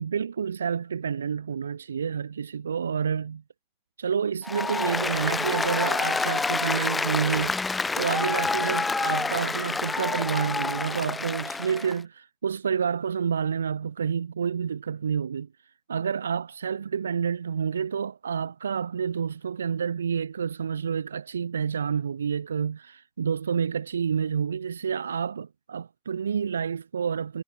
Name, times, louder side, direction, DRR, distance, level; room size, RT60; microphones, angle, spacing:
voice 1, 0.0-3.4 4.0-7.5 7.9-15.5 15.9-27.4, right 7 dB, 70° right, 1.5 m, -29 dB
Applause, 4.4-12.0, left 3 dB, 10° left, 1.0 m, -28 dB
figure-of-eight pair, 90°, 0 cm